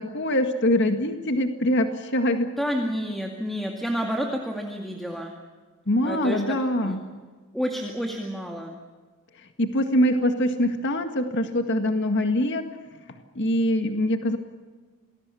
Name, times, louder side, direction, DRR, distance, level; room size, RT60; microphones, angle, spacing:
voice 1, 0.0-2.5 5.9-7.0 9.6-12.6 13.4-14.4, left 1 dB, 55° left, 6 dB, 1.9 m, -23 dB
voice 2, 2.6-5.3 6.0-7.0 7.5-8.8, equal, ahead, 1 dB, 2.2 m, -30 dB
27.0 x 20.0 x 7.0 m, 1.4 s
head